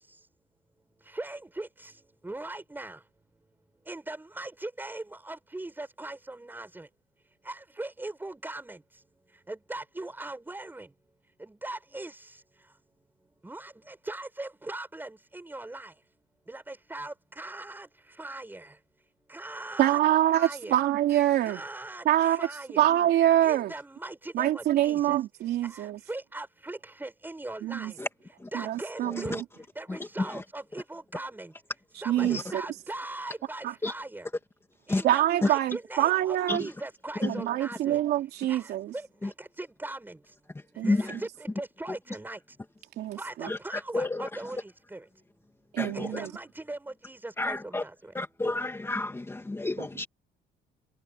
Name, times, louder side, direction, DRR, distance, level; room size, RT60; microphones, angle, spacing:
voice 1, 1.1-1.9 2.2-3.0 3.9-6.9 7.5-8.8 9.5-10.9 11.4-12.2 13.4-15.9 16.5-17.9 18.2-18.7 19.3-20.0 20.3-20.8 21.5-22.9 23.4-25.2 25.6-28.0 28.5-29.4 29.8-31.5 32.0-34.3 34.9-38.0 38.5-40.2 40.8-42.4 43.2-45.0 45.9-48.1, right 2 dB, 10° right, 7.2 m, -40 dB
voice 2, 19.8-21.6 22.0-22.5 22.8-23.7 24.3-26.0 27.6-27.9 28.5-29.4 32.1-32.6 33.6-33.7 35.0-36.6 37.2-38.9 40.8-41.0 43.0-43.5 45.7-46.3, right 13 dB, 75° right, 3.2 m, -25 dB
voice 3, 29.0-29.4 29.9-30.4 32.2-32.5 33.8-33.9 34.9-35.0 35.4-35.5 36.5-36.7 37.2-37.4 39.2-39.3 40.5-41.2 41.9-42.0 43.5-44.5 45.8-46.2 47.4-47.8 48.1-50.1, left 2 dB, 15° left, 2.4 m, -31 dB
cardioid pair, 110°, 17 cm